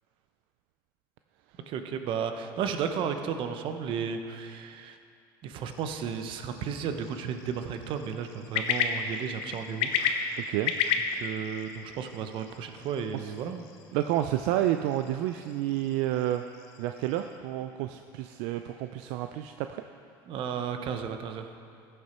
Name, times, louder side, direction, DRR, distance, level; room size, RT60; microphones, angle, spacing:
voice 1, 1.7-5.0 5.4-10.5 11.1-13.6 20.3-21.5, right 7 dB, 60° right, 7 dB, 0.9 m, -34 dB
sound 1, 5.7-17.4, left 7 dB, 75° left, 0.9 m, -35 dB
voice 2, 13.9-16.4 16.8-19.8, right 13 dB, 80° right, 7 dB, 0.4 m, -30 dB
15.0 x 6.8 x 4.4 m, 2.4 s
supercardioid pair, 100°, 10 cm